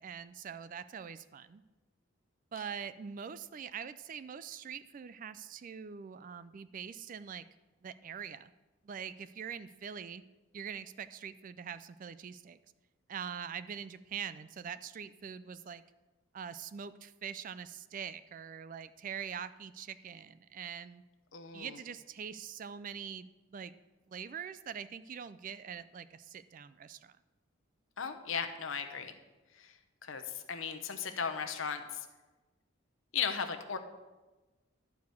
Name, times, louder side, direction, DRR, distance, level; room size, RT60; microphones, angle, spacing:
voice 1, 0.0-1.6 2.5-7.4 7.8-8.5 8.9-10.2 10.5-12.6 13.1-15.8 16.3-21.0 21.5-23.7 24.1-27.1, right 7 dB, 40° right, 14 dB, 0.3 m, -43 dB
voice 2, 21.3-21.8 28.0-29.1 29.6-29.7 30.0-32.0 33.1-33.8, left 6 dB, 70° left, 6 dB, 0.9 m, -36 dB
11.5 x 4.8 x 6.8 m, 1.2 s
head